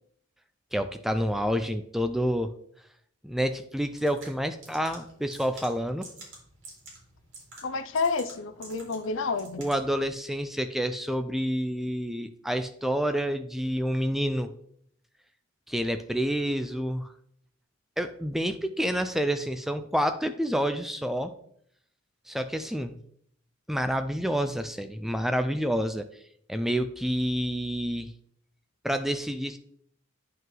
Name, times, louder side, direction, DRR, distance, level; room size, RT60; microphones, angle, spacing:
voice 1, 0.7-2.5 3.2-6.1 9.6-14.5 15.7-17.1 18.0-21.3 22.3-23.0 23.7-26.1 26.5-28.1 28.8-29.6, equal, ahead, 9 dB, 0.3 m, -28 dB
sound 1, 3.8-10.0, right 2 dB, 70° right, 3.5 m, -49 dB
voice 2, 7.6-9.6, left 4 dB, 75° left, 10 dB, 0.5 m, -29 dB
9.2 x 5.5 x 3.8 m, 0.65 s
head